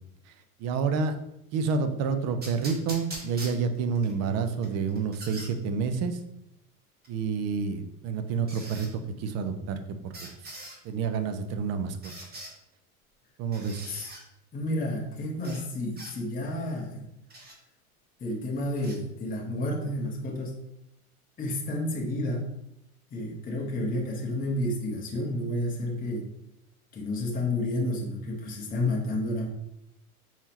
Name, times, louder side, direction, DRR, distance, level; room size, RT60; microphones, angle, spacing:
voice 1, 0.6-1.2 1.5-6.2 7.1-8.9 9.2-10.1 10.4-10.5 10.8-12.0 13.4-13.9, right 5 dB, 35° right, 8 dB, 0.6 m, -29 dB
sound 1, 2.4-4.1 4.6-5.5 7.0-7.1 8.5-8.9 10.1-10.8 12.0-12.5 13.5-14.2 15.4-15.6 16.0-16.1 17.3-17.5 18.8-18.9, right 1 dB, 20° right, 1.3 m, -42 dB
voice 2, 14.5-17.1 18.2-20.6 21.4-22.5 23.1-26.3 26.9-29.5, left 1 dB, 20° left, -2 dB, 1.0 m, -30 dB
4.5 x 3.6 x 2.9 m, 0.83 s
hypercardioid pair, 105°, 45 cm